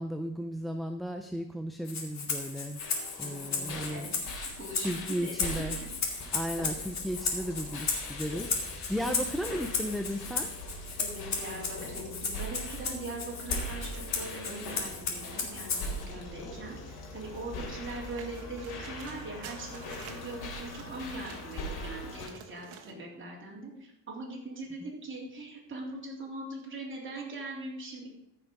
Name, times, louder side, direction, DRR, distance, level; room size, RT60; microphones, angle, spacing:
voice 1, 0.0-2.8 3.2-4.1 4.8-5.8 6.3-10.5 24.8-24.9, equal, ahead, 6 dB, 0.4 m, -35 dB
Rattle (instrument), 1.9-16.0, left 4 dB, 40° left, 2.4 m, -35 dB
sound 1, 2.8-22.3, left 1 dB, 60° left, 2.9 m, -41 dB
voice 2, 3.2-4.2 4.5-5.7 11.0-28.1, right 2 dB, 30° right, -3 dB, 3.6 m, -41 dB
sound 2, 17.9-21.6 22.0-22.9, right 8 dB, 85° right, 1.6 m, -50 dB
14.0 x 6.0 x 5.3 m, 0.83 s
cardioid pair, 125°, 43 cm